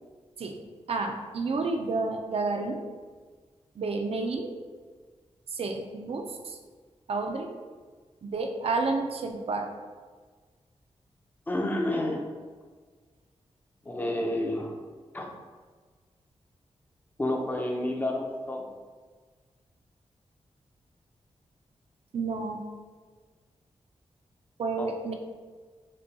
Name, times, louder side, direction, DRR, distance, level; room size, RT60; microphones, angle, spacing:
voice 1, 0.9-2.8 3.8-4.5 5.5-6.6 7.1-7.6 8.2-9.7 22.1-22.6 24.6-25.1, right 3 dB, 60° right, 4 dB, 0.5 m, -30 dB
voice 2, 11.5-12.2 13.8-14.7 15.1-15.3 17.2-18.7 24.8-24.9, left 1 dB, 15° left, 1 dB, 0.5 m, -29 dB
5.2 x 2.3 x 2.8 m, 1.5 s
wide cardioid pair, 120°, 11 cm